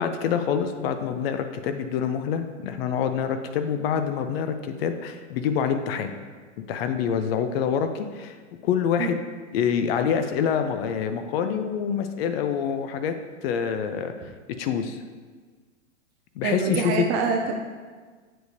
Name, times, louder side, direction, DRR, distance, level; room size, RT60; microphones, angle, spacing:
voice 1, 0.0-6.1 6.7-8.4 8.6-9.2 9.5-13.1 13.4-14.3 14.6-15.0 16.4-17.0, left 7 dB, 50° left, 8 dB, 0.6 m, -26 dB
voice 2, 16.4-17.7, right 5 dB, 25° right, 3 dB, 0.4 m, -25 dB
7.6 x 6.5 x 2.7 m, 1.5 s
hypercardioid pair, 120°, 39 cm